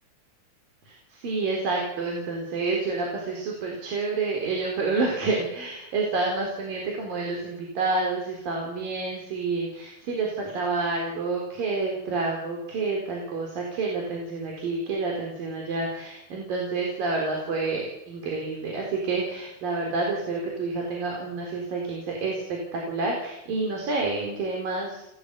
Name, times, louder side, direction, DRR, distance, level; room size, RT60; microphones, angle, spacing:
voice 1, 0.9-25.1, right 3 dB, 45° right, 0 dB, 5.5 m, -29 dB
30.0 x 14.5 x 8.3 m, 0.88 s
omnidirectional pair, 5.6 m